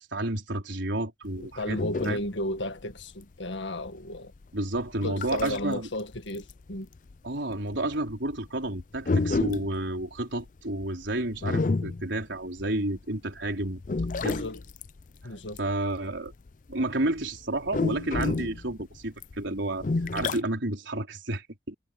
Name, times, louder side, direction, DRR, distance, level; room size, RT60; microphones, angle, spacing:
voice 1, 0.0-1.8 2.0-2.2 4.5-5.9 7.2-13.8 14.2-14.4 15.6-16.3 16.7-19.9 20.1-21.7, right 1 dB, 90° right, 4.4 m, -31 dB
sound 1, 1.2-5.8 6.1-13.0 13.4-16.9 17.2-20.4, left 3 dB, 45° left, 0.5 m, -30 dB
voice 2, 1.4-4.3 5.0-6.9 14.2-14.6 15.2-15.6, left 1 dB, 90° left, 1.9 m, -34 dB
head